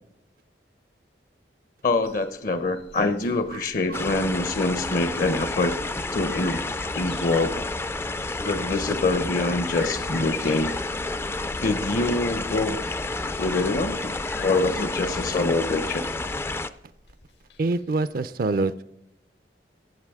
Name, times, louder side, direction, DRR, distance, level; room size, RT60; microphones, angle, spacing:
voice 1, 1.8-5.8 6.1-6.6 6.9-7.6 8.4-10.7 11.6-12.8 13.4-16.1, left 2 dB, 50° left, 12 dB, 0.6 m, -25 dB
sound 1, 1.9-17.8 18.1-18.2, left 6 dB, 70° left, 1.0 m, -45 dB
sound 2, 3.9-16.7, left 2 dB, 15° left, 0.3 m, -30 dB
voice 2, 17.6-18.8, right 3 dB, 55° right, 14 dB, 0.4 m, -25 dB
14.5 x 8.3 x 3.6 m, 0.84 s
head